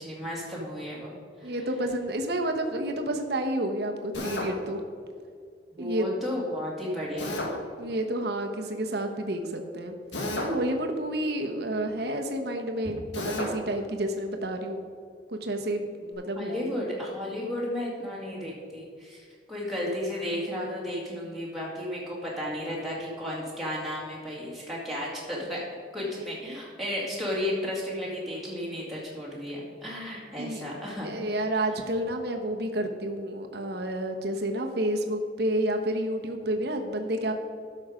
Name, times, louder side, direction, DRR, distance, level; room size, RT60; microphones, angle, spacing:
voice 1, 0.0-1.6 5.8-7.4 16.4-25.7 25.9-31.1, left 1 dB, ahead, -6 dB, 2.1 m, -33 dB
voice 2, 1.4-4.8 5.8-6.0 7.8-9.9 10.3-14.8 15.3-16.7 26.1-26.2 30.3-30.6 31.0-37.3, right 1 dB, 60° right, 4 dB, 1.1 m, -30 dB
Drill, 4.1-4.5 7.2-7.5 10.1-10.6 13.1-13.5, left 1 dB, 80° left, 1.8 m, -31 dB
12.0 x 6.5 x 5.0 m, 2.2 s
head